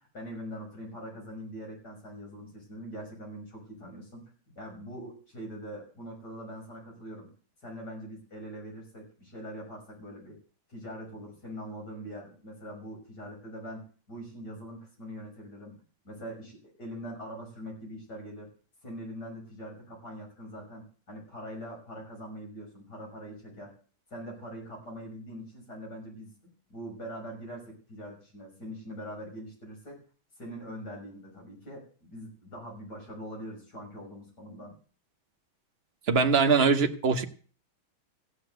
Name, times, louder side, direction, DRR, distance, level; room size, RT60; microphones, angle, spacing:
voice 1, 0.0-4.3 4.6-7.3 7.6-10.4 10.7-15.8 16.1-18.5 18.8-23.7 24.1-30.0 30.4-34.7, equal, 50° left, 6.8 m, -43 dB
voice 2, 36.1-37.2, right 5 dB, 40° right, 1.1 m, -22 dB
15.5 x 7.2 x 7.9 m
omnidirectional pair, 2.3 m